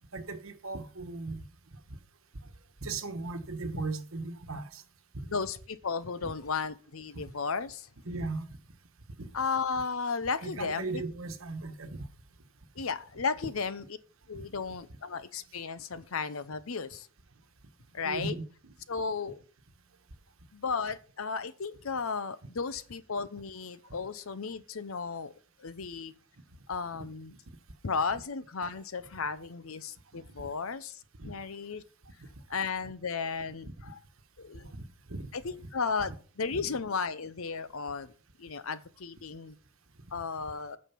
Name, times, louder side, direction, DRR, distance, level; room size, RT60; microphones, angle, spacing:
voice 1, 0.1-1.5 2.8-4.8 5.1-5.4 6.2-6.3 8.0-8.6 9.2-9.3 10.4-12.1 14.3-14.4 18.0-18.7 30.4-30.5 31.2-31.3 32.2-32.3 33.6-33.7 34.5-34.8 35.1-35.3 36.5-36.6, right 3 dB, 80° right, 1.2 m, -37 dB
voice 2, 5.3-7.9 9.3-11.0 12.8-13.8 14.3-17.1 17.9-18.3 18.9-19.4 20.5-25.3 25.6-26.1 26.7-27.3 27.8-31.8 32.5-34.0 34.4-34.7 35.3-38.1 38.4-39.5 40.1-40.8, left 5 dB, 85° left, 0.8 m, -34 dB
9.2 x 6.5 x 5.7 m
head